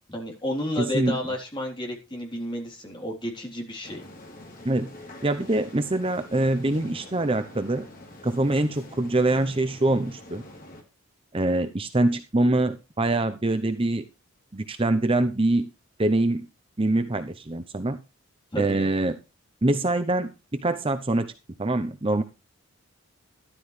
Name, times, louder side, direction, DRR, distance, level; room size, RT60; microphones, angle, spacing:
voice 1, 0.1-4.0 18.5-18.9, left 1 dB, 20° left, 1 dB, 3.6 m, -31 dB
voice 2, 0.8-1.2 4.6-4.9 5.2-7.9 8.2-10.4 11.3-14.0 14.5-15.7 16.0-16.5 16.8-18.0 18.6-19.2 19.6-21.3 21.6-22.2, right 2 dB, 25° right, 9 dB, 0.8 m, -24 dB
sound 1, 3.8-10.8, left 1 dB, 40° left, 3.2 m, -45 dB
13.5 x 12.5 x 3.3 m, 0.29 s
head